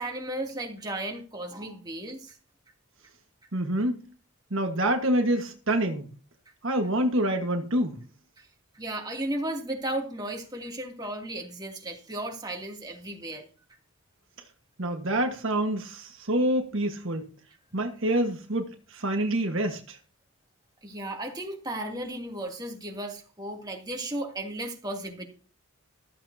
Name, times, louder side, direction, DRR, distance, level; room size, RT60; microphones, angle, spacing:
voice 1, 0.0-2.4 8.4-8.5 8.7-13.4 20.8-25.2, right 1 dB, 20° right, 2.6 m, -35 dB
voice 2, 3.5-4.0 4.5-6.1 6.6-8.0 14.8-17.3 17.7-20.0, right 1 dB, 60° right, 1.5 m, -27 dB
14.5 x 14.0 x 2.8 m
head